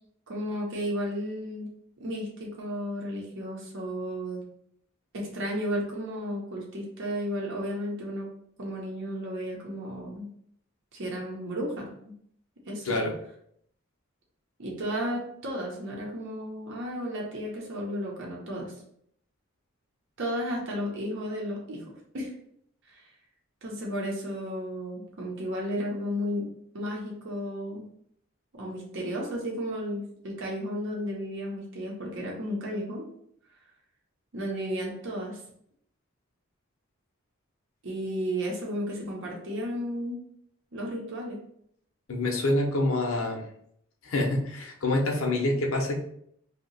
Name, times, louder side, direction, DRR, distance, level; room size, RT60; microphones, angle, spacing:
voice 1, 0.3-1.7 2.0-4.4 5.1-8.3 8.6-10.3 10.9-12.1 12.7-13.0 14.6-18.7 20.2-22.3 22.9-23.0 23.6-26.5 26.7-27.9 28.5-33.0 34.3-35.4 37.8-40.2 40.7-41.4, equal, 65° right, -2 dB, 0.7 m, -33 dB
voice 2, 42.1-43.4 44.0-46.0, left 2 dB, 75° left, 0 dB, 0.7 m, -26 dB
2.7 x 2.2 x 3.9 m, 0.69 s
head